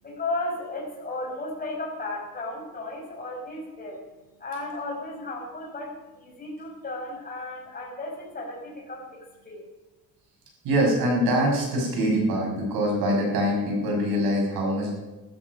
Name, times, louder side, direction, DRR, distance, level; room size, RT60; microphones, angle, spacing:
voice 1, 0.0-4.0 4.4-9.7, left 2 dB, 25° left, -2 dB, 5.7 m, -34 dB
voice 2, 10.6-15.0, equal, 85° right, -1 dB, 6.4 m, -24 dB
15.5 x 12.5 x 5.4 m, 1.1 s
cardioid pair, 130°, 35 cm